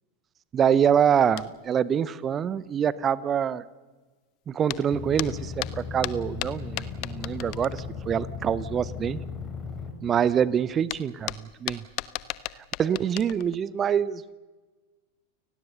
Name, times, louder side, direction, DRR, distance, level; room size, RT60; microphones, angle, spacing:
voice 1, 0.5-3.6 4.5-9.2 10.0-11.3 11.6-11.8 12.8-14.3, right 8 dB, 25° right, 19 dB, 0.7 m, -25 dB
sound 1, 1.4-1.7 4.7-8.1 10.4-10.5 10.7-13.6, left 20 dB, 40° left, 1.0 m, -36 dB
sound 2, 4.9-9.9, left 5 dB, 20° left, 4.2 m, -36 dB
29.5 x 19.0 x 6.8 m, 1.3 s
figure-of-eight pair, 90°, 0 cm